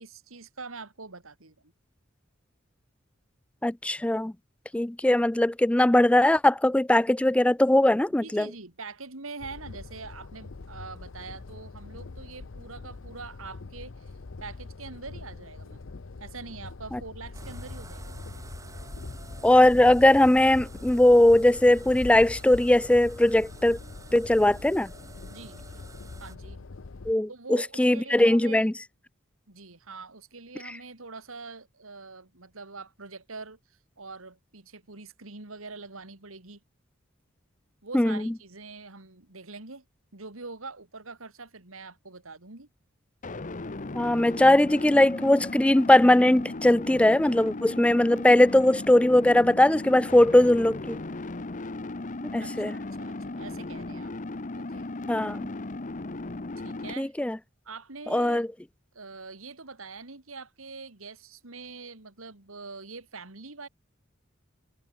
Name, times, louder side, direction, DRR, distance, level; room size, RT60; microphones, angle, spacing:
voice 1, 0.0-1.7 8.2-14.1 14.4-15.8 16.2-18.2 25.3-25.7 26.2-26.6 27.3-28.7 29.5-33.6 34.0-36.6 37.8-39.8 40.1-42.7 52.4-54.1 54.5-54.9 56.6-57.1 57.6-58.4 58.9-63.7, right 4 dB, 85° right, 2.9 m, -43 dB
voice 2, 3.6-4.3 4.7-8.5 16.9-17.0 19.4-23.8 24.1-24.9 27.1-28.7 37.9-38.3 43.9-51.0 52.3-52.7 55.1-55.5 57.0-57.4 58.1-58.5, left 1 dB, 5° left, 0.4 m, -20 dB
sound 1, 9.4-27.1, left 3 dB, 65° left, 0.7 m, -43 dB
sound 2, 17.3-26.4, right 2 dB, 15° right, 1.2 m, -47 dB
sound 3, 43.2-56.9, left 2 dB, 40° left, 1.0 m, -36 dB
head